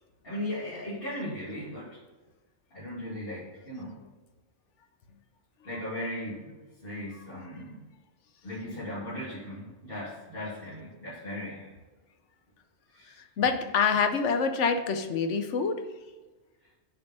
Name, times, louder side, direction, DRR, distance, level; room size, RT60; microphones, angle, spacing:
voice 1, 0.2-2.0 2.7-4.0 5.6-6.5 6.8-7.8 8.4-11.7 12.9-13.3, left 1 dB, 50° left, -11 dB, 2.8 m, -37 dB
voice 2, 13.2-15.9, left 5 dB, 80° left, 8 dB, 1.1 m, -26 dB
6.9 x 5.3 x 5.7 m, 1.3 s
omnidirectional pair, 1.2 m